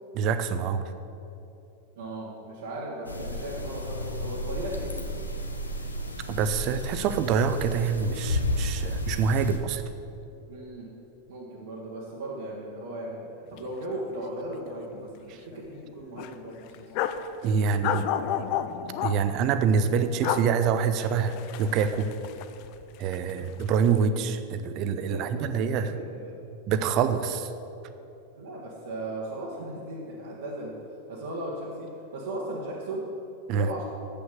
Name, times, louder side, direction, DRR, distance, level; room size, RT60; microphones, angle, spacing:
voice 1, 0.1-0.8 6.3-9.8 17.4-18.1 19.0-22.1 23.0-25.9 26.7-27.5 33.5-33.7, right 6 dB, 40° right, 11 dB, 0.6 m, -26 dB
voice 2, 2.0-5.3 10.5-10.9 11.3-16.8 17.5-17.8 23.4-23.6 24.9-26.4 28.4-30.7 31.1-33.1 33.5-33.8, right 1 dB, 60° right, -5 dB, 1.4 m, -37 dB
sound 1, 3.0-9.6, left 1 dB, 80° left, 0.9 m, -32 dB
sound 2, 13.5-13.7 13.9-14.1 14.5-15.2 15.5-15.6 16.2-17.3 17.8-19.2 20.0-20.4 20.9-22.8 23.1-23.9, left 10 dB, 45° left, 0.5 m, -31 dB
7.9 x 6.7 x 7.8 m, 2.8 s
figure-of-eight pair, 90°, 0 cm